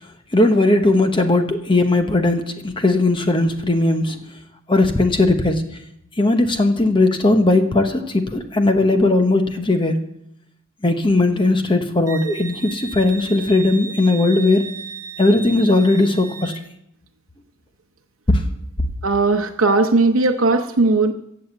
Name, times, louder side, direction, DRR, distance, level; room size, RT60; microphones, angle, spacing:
voice 1, 0.3-4.2 4.7-5.6 6.2-10.0 10.8-14.7 15.2-16.5 18.3-18.4, left 2 dB, 25° left, 7 dB, 0.9 m, -18 dB
Wind instrument woodwind instrument, 12.1-16.6, right 5 dB, 15° right, 0.7 m, -35 dB
voice 2, 19.0-21.1, right 3 dB, 85° right, 4 dB, 0.8 m, -17 dB
16.0 x 7.0 x 8.0 m, 0.79 s
head